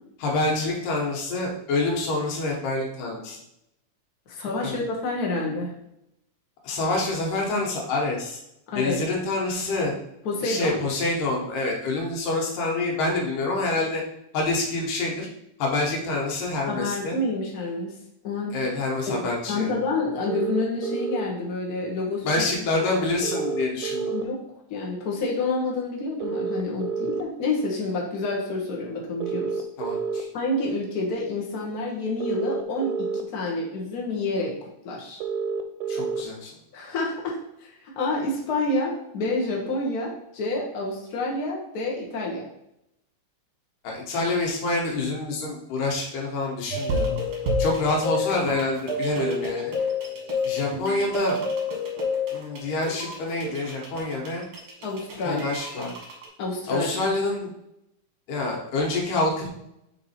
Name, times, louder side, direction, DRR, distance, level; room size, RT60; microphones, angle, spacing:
voice 1, 0.2-3.4 4.6-4.8 6.6-8.4 8.8-9.9 10.4-14.0 14.3-15.3 15.6-17.1 18.5-19.8 22.2-24.1 29.8-30.3 35.9-36.5 43.8-47.1 47.6-49.7 50.4-51.4 52.3-54.4 55.2-55.9 56.7-57.5 58.3-59.5, left 2 dB, 85° left, -1 dB, 2.8 m, -27 dB
voice 2, 4.3-5.7 8.7-9.0 10.2-10.8 16.7-17.9 18.2-18.5 19.1-22.7 24.1-24.4 24.7-29.6 30.3-34.5 34.8-35.2 36.7-42.5 54.8-55.4 56.4-57.0, left 2 dB, 60° left, -2 dB, 1.0 m, -28 dB
sound 1, 20.3-21.2 23.2-24.2 26.2-27.2 29.2-30.2 32.2-33.2 35.2-36.2, right 6 dB, 90° right, 2.2 m, -29 dB
sound 2, 46.7-56.3, left 2 dB, 60° right, 1.4 m, -29 dB
6.0 x 3.7 x 4.3 m, 0.81 s
omnidirectional pair, 3.7 m